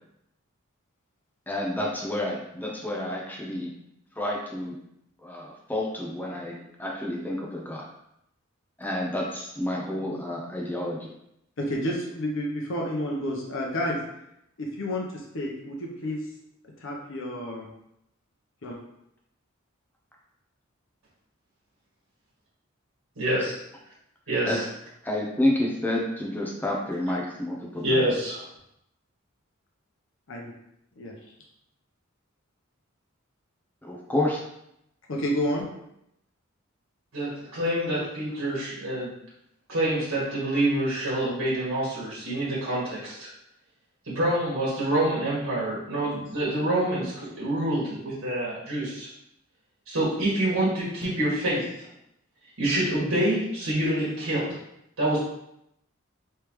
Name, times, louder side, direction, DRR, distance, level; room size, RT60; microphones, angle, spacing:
voice 1, 1.5-3.7 4.2-4.8 5.2-7.9 8.8-11.1 24.5-24.6 25.0-28.1 33.8-34.4, left 1 dB, 10° left, -2 dB, 0.7 m, -29 dB
voice 2, 11.6-14.0 14.6-16.2 16.8-17.7 18.6-18.8 30.3-30.5 31.0-31.1 35.1-35.7, left 1 dB, 65° left, -1 dB, 0.7 m, -30 dB
voice 3, 23.2-23.5 24.3-24.6 27.8-28.4 37.1-39.1 39.7-43.3 44.1-49.1 49.9-51.9 52.6-54.5 55.0-55.2, right 1 dB, 70° right, -7 dB, 1.4 m, -26 dB
3.4 x 3.2 x 3.0 m, 0.79 s
head